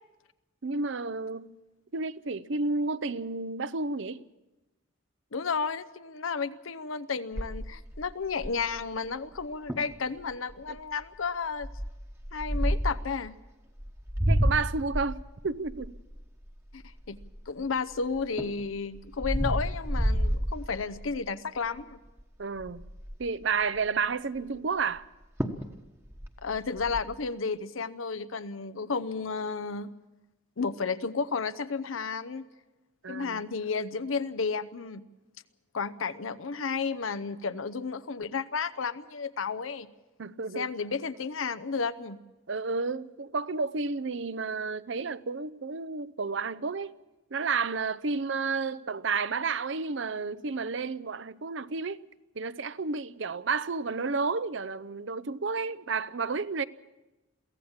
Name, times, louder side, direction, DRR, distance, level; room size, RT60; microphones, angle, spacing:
voice 1, 0.6-1.5 1.9-4.2 10.7-10.8 14.3-16.0 22.4-22.9 23.2-25.0 33.0-33.4 40.2-40.7 42.5-46.9 47.3-52.0 52.4-56.6, right 4 dB, 65° right, 0.7 m, -31 dB
voice 2, 5.3-11.7 12.3-13.4 16.7-16.8 17.1-17.2 17.5-22.0 26.4-29.9 30.6-32.5 33.1-35.0 35.7-39.9 40.5-42.2, left 5 dB, 85° left, 0.8 m, -32 dB
sound 1, 7.4-8.8 9.4-9.5 9.7-10.0 10.5-10.8 11.6-13.1 13.8-17.7 18.1-21.2 21.6-21.9 22.2-22.3 22.6-23.3 25.0-25.1 25.4-25.7 26.0-27.0, equal, 15° right, 1.2 m, -30 dB
23.0 x 16.5 x 7.3 m
head